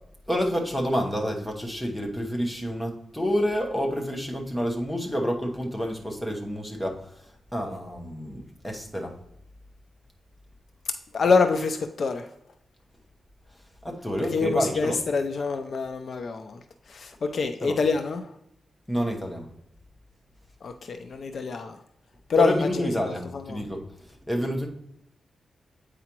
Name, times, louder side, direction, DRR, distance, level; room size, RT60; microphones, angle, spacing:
voice 1, 0.3-9.2 13.8-15.0 17.6-17.8 18.9-19.5 22.4-23.8 24.3-24.7, equal, 5° left, 0 dB, 1.0 m, -28 dB
voice 2, 11.1-12.3 14.3-16.6 16.9-18.3 20.6-21.8 22.3-23.1 23.5-23.6, left 4 dB, 50° left, 7 dB, 0.4 m, -26 dB
8.2 x 4.8 x 2.9 m, 0.79 s
wide cardioid pair, 165°, 0 cm